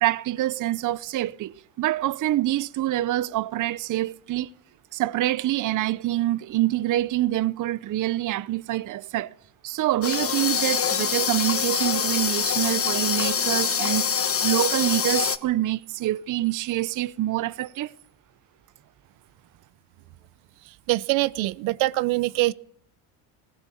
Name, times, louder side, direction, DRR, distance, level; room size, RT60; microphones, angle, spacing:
voice 1, 0.0-4.5 4.9-9.3 9.6-14.2 14.4-17.9, right 14 dB, 40° right, 0.8 m, -26 dB
sound 1, 10.0-15.4, left 7 dB, 25° left, 1.3 m, -25 dB
voice 2, 20.9-22.5, right 19 dB, 65° right, 0.9 m, -23 dB
19.5 x 17.0 x 8.5 m
supercardioid pair, 105°, 49 cm